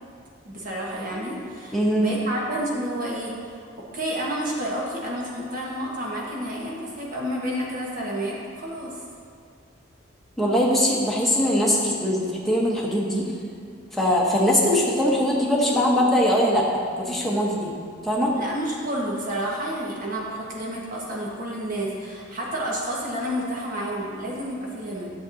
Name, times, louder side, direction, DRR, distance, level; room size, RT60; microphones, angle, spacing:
voice 1, 0.4-3.6 3.9-9.0 18.3-25.1, right 1 dB, 45° right, -4 dB, 1.5 m, -30 dB
voice 2, 1.7-2.1 10.4-13.3 13.9-16.7 17.0-17.7 18.0-18.3, equal, ahead, -5 dB, 1.1 m, -21 dB
10.0 x 7.5 x 2.8 m, 2.3 s
head